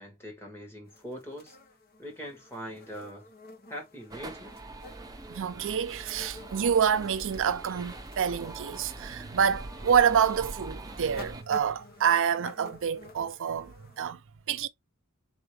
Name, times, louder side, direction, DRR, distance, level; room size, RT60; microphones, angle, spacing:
voice 1, 0.0-1.6 2.0-3.3 3.7-4.6, equal, 10° left, 2.0 m, -42 dB
sound 1, 0.9-14.1, left 2 dB, 45° left, 1.3 m, -51 dB
sound 2, 4.1-11.4, right 2 dB, 15° right, 0.8 m, -43 dB
voice 2, 5.3-14.2 14.5-14.7, right 7 dB, 60° right, 0.5 m, -27 dB
4.4 x 3.5 x 3.2 m
head